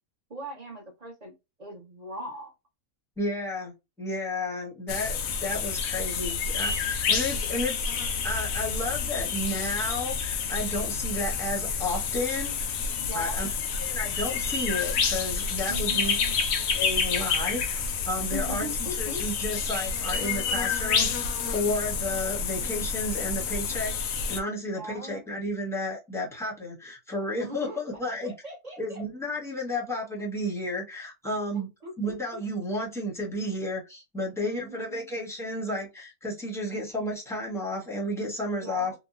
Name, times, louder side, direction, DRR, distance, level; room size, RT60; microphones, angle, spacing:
voice 1, 0.3-1.3 1.6-2.5 13.0-13.4 15.7-16.4 18.3-19.2 24.7-25.2 27.4-27.8 28.2-29.0 31.5-32.4 34.4-35.1 38.6-38.9, equal, 35° right, 1 dB, 0.8 m, -39 dB
voice 2, 3.2-7.8 8.2-12.5 13.1-13.5 13.8-16.2 16.7-18.7 19.0-28.3 28.8-31.7 32.0-38.9, left 1 dB, ahead, -3 dB, 0.8 m, -32 dB
sound 1, 4.9-24.4, left 5 dB, 70° left, 0.9 m, -29 dB
2.9 x 2.1 x 2.4 m, 0.24 s
omnidirectional pair, 1.5 m